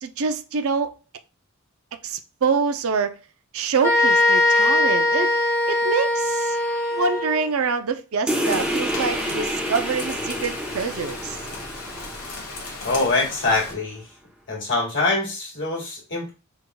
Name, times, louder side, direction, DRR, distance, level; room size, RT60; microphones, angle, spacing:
voice 1, 0.0-0.9 2.0-3.1 3.5-6.6 6.9-11.4, right 5 dB, 70° right, 0.5 m, -25 dB
sound 1, 3.8-7.5, left 2 dB, 15° left, 1.0 m, -20 dB
sound 2, 8.3-13.3, equal, 5° right, 0.8 m, -29 dB
Rain, 8.4-13.7, left 3 dB, 80° left, 1.3 m, -36 dB
voice 2, 12.8-14.0 14.5-16.3, left 3 dB, 55° left, 1.8 m, -24 dB
5.4 x 3.5 x 2.2 m
head